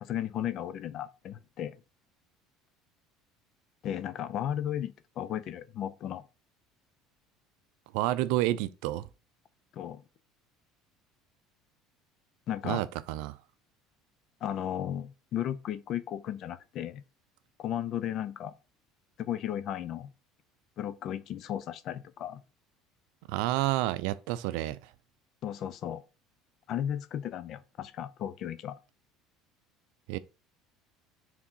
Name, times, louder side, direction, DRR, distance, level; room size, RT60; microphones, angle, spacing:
voice 1, 0.0-1.8 3.8-6.2 9.7-10.0 12.5-12.8 14.4-17.0 17.6-18.5 19.2-20.1 20.8-22.4 25.4-26.0 26.7-28.8, left 10 dB, 45° left, 0.6 m, -35 dB
voice 2, 7.9-9.1 12.6-13.4 23.3-24.9 30.1-30.2, right 15 dB, 75° right, 0.5 m, -29 dB
4.8 x 3.7 x 5.5 m
cardioid pair, 150°, 0 cm